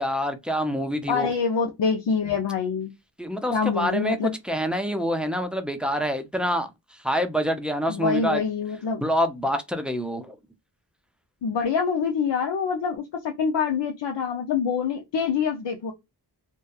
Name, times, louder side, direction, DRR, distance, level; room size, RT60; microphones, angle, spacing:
voice 1, 0.0-1.3 3.2-4.2 4.4-6.7 7.0-8.4 9.0-10.4, equal, ahead, 0.5 m, -26 dB
voice 2, 1.1-2.9 3.5-4.3 7.9-9.0 11.4-15.9, left 6 dB, 85° left, 0.6 m, -25 dB
2.7 x 2.3 x 2.3 m
wide cardioid pair, 85°, 42 cm